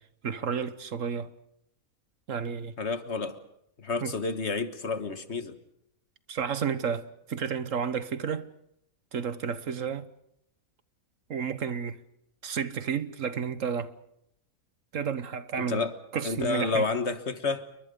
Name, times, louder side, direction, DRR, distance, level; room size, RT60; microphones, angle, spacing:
voice 1, 0.2-1.3 2.3-2.7 4.0-4.1 6.3-8.5 9.1-10.1 11.3-12.0 12.4-14.0 14.9-15.9 16.1-16.9, right 7 dB, 65° right, 1.5 m, -31 dB
voice 2, 2.8-3.4 3.8-5.6 15.7-15.9 16.2-17.7, left 4 dB, 50° left, 1.7 m, -30 dB
29.5 x 23.0 x 5.3 m
omnidirectional pair, 1.5 m